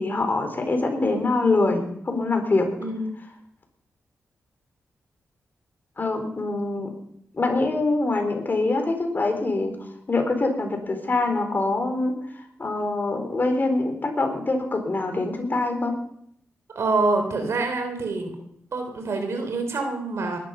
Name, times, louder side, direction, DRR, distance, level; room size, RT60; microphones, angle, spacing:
voice 1, 0.0-2.7 6.0-6.9 7.3-9.8 10.1-16.0, left 2 dB, 40° left, 5 dB, 4.2 m, -24 dB
voice 2, 2.8-3.1 16.7-18.3 18.7-20.4, right 3 dB, 70° right, 5 dB, 3.0 m, -26 dB
19.5 x 11.5 x 5.6 m, 0.71 s
cardioid pair, 60°, 5 cm